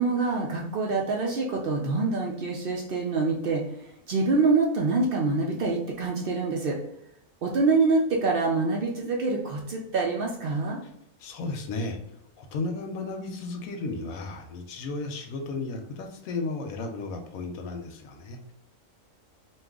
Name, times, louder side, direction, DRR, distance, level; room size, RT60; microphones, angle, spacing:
voice 1, 0.0-3.6 4.1-6.8 7.4-10.8, right 3 dB, 65° right, -1 dB, 0.6 m, -25 dB
voice 2, 11.2-12.0 12.4-18.5, left 3 dB, 90° left, 4 dB, 1.1 m, -34 dB
2.7 x 2.3 x 3.5 m, 0.76 s
omnidirectional pair, 1.4 m